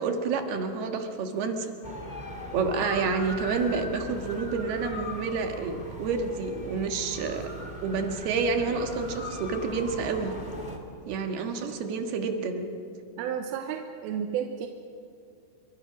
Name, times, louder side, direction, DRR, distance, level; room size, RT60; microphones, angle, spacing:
voice 1, 0.0-1.7 2.5-7.4 7.8-10.3 11.1-12.7, right 4 dB, 60° right, 5 dB, 3.3 m, -29 dB
sound 1, 1.8-10.8, equal, 30° left, 0.7 m, -39 dB
voice 2, 13.2-14.7, right 8 dB, 90° right, 4 dB, 3.6 m, -32 dB
29.0 x 25.0 x 6.3 m, 2.5 s
omnidirectional pair, 5.7 m